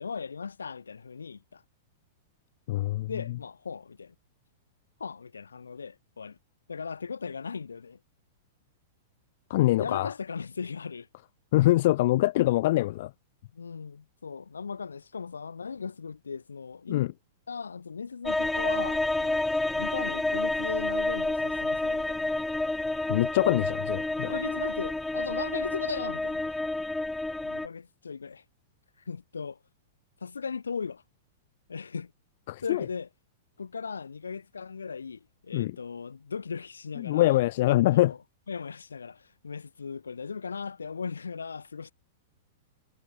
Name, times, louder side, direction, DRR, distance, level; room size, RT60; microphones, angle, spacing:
voice 1, 0.0-1.6 3.1-4.1 5.0-6.4 6.7-8.0 9.7-11.1 13.5-17.1 17.5-19.4 19.7-22.3 24.2-26.5 27.4-28.4 29.0-29.6 30.2-31.0 31.7-32.1 32.6-33.1 33.6-37.4 37.7-38.2 38.5-41.9, left 5 dB, 80° left, 2.8 m, -38 dB
voice 2, 2.7-3.1 9.5-10.1 11.5-13.1 16.9-17.1 23.1-24.3 32.5-32.8 35.5-35.8 37.0-38.1, left 16 dB, 55° left, 0.4 m, -24 dB
sound 1, 18.3-27.7, left 2 dB, 5° left, 0.6 m, -29 dB
figure-of-eight pair, 100°, 0 cm